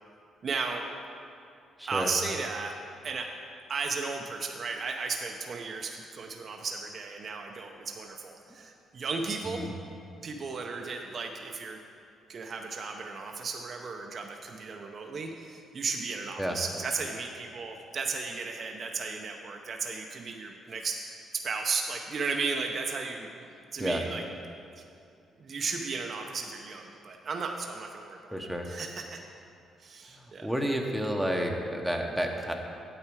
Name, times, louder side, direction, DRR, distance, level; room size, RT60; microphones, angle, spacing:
voice 1, 0.4-0.8 1.9-2.7 3.0-3.3 3.7-9.7 10.2-11.8 12.3-21.0 21.3-23.5 23.7-24.3 24.8-24.9 25.4-29.2 29.8-30.5, right 4 dB, 50° right, 2 dB, 0.7 m, -35 dB
voice 2, 1.8-2.1 9.5-9.7 16.4-16.6 23.8-24.0 28.3-28.7 30.4-32.5, equal, ahead, 1 dB, 1.0 m, -30 dB
8.9 x 7.9 x 4.7 m, 2.5 s
cardioid pair, 90°, 0 cm